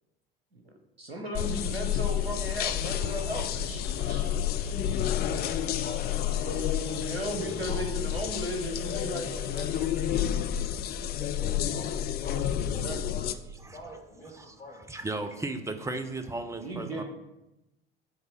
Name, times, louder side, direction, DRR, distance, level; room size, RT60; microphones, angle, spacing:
voice 1, 0.5-4.9 6.3-6.7 7.0-10.1 12.6-13.1 16.5-17.0, right 1 dB, 90° right, 3 dB, 1.0 m, -37 dB
sound 1, 1.3-13.3, left 10 dB, 35° left, 0.4 m, -30 dB
sound 2, 1.4-9.4, left 5 dB, 65° left, 0.9 m, -50 dB
voice 2, 5.2-6.7 7.2-8.1 11.1-15.3, equal, 85° left, -2 dB, 1.9 m, -46 dB
voice 3, 14.9-17.0, right 2 dB, 10° right, 6 dB, 0.6 m, -35 dB
7.8 x 3.4 x 5.7 m, 0.94 s
figure-of-eight pair, 70°, 30 cm